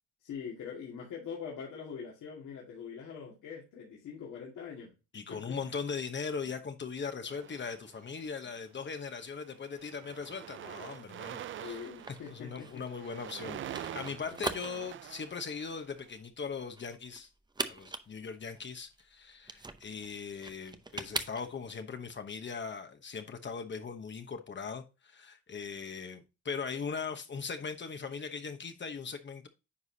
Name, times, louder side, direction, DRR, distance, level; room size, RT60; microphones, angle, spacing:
voice 1, 0.2-4.9 5.3-5.4 11.6-12.9, left 7 dB, 80° left, 2.2 m, -43 dB
voice 2, 5.1-11.8 12.3-17.3 17.7-29.5, left 5 dB, 40° left, 1.0 m, -39 dB
sound 1, 7.3-8.3 9.0-9.3 9.5-16.0, right 11 dB, 45° right, 0.4 m, -45 dB
sound 2, 11.6-21.8, right 3 dB, 15° right, 0.7 m, -42 dB
9.6 x 4.7 x 2.8 m
cardioid pair, 90°, 30 cm